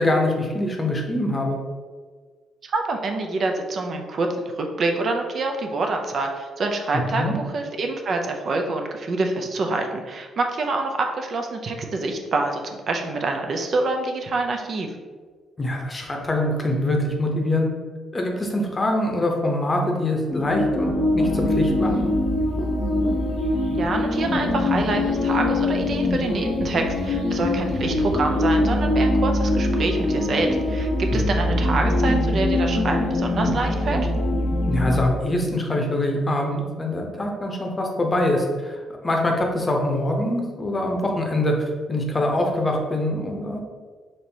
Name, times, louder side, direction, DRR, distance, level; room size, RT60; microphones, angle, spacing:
voice 1, 0.0-1.6 7.1-7.4 15.6-17.7 18.1-22.1 31.1-31.5 34.7-43.6, left 1 dB, 25° left, 1 dB, 0.7 m, -24 dB
voice 2, 2.6-4.3 4.6-14.9 23.8-34.1, right 3 dB, 55° right, 3 dB, 0.5 m, -26 dB
sound 1, 20.3-35.1, left 1 dB, 85° left, 0.8 m, -23 dB
4.3 x 3.1 x 2.7 m, 1.5 s
cardioid pair, 90°, 0 cm